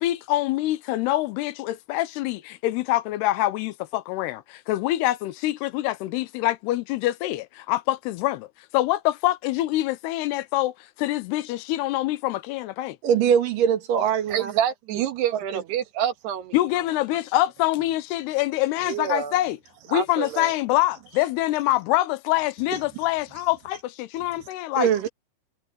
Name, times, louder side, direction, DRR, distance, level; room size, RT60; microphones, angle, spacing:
voice 1, 0.0-8.5 8.7-13.0 16.5-19.6 19.9-24.9, left 16 dB, 85° left, 2.9 m, -25 dB
voice 2, 13.0-14.5 24.8-25.1, right 8 dB, 60° right, 3.1 m, -21 dB
voice 3, 14.3-16.6 18.8-19.4 19.9-20.5 22.7-22.8, right 10 dB, 85° right, 3.8 m, -27 dB
omnidirectional pair, 4.6 m